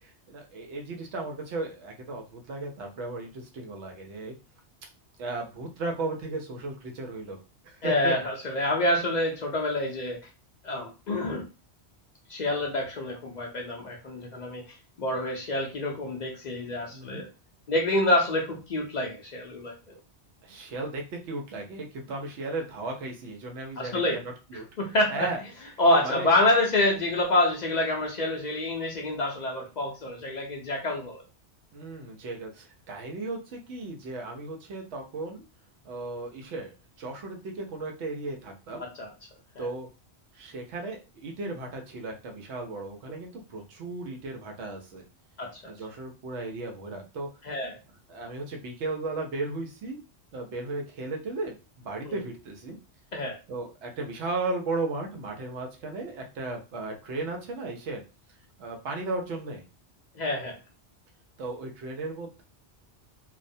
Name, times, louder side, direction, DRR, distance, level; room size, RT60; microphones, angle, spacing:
voice 1, 0.0-4.3 5.2-7.4 7.6-8.1 16.9-17.2 20.4-24.6 25.1-25.4 26.0-26.3 31.7-35.4 35.8-38.8 39.6-39.9 40.3-45.0 45.6-47.3 48.1-50.0 50.3-52.8 53.5-58.0 58.6-59.7 61.4-62.4, right 3 dB, 85° right, 2 dB, 1.0 m, -35 dB
voice 2, 7.8-10.2 10.6-11.5 12.3-17.3 17.7-19.7 23.8-24.2 24.8-25.3 25.8-31.2 39.0-39.1 39.6-39.7 45.4-45.7 47.4-47.8 52.1-52.2 53.1-53.4 60.1-60.6, left 1 dB, 55° left, -1 dB, 0.5 m, -27 dB
2.4 x 2.1 x 2.6 m, 0.30 s
omnidirectional pair, 1.2 m